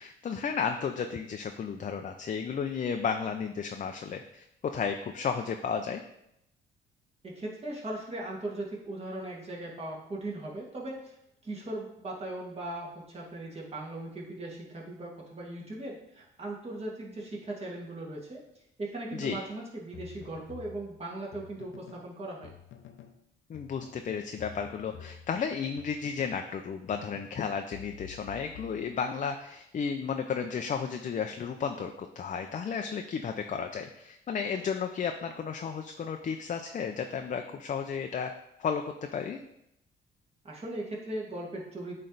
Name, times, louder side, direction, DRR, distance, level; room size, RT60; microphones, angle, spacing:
voice 1, 0.0-6.0 19.1-19.4 23.5-38.3 38.6-39.4, left 6 dB, 40° left, 5 dB, 0.5 m, -33 dB
voice 2, 7.2-11.2 11.4-18.4 18.8-22.5 40.4-42.0, right 1 dB, 30° right, -3 dB, 2.1 m, -38 dB
sound 1, 19.9-22.1 22.4-23.2 23.5-26.5 26.9-29.3, left 9 dB, 80° left, 0.7 m, -49 dB
8.6 x 3.2 x 3.9 m, 0.80 s
cardioid pair, 90°, 20 cm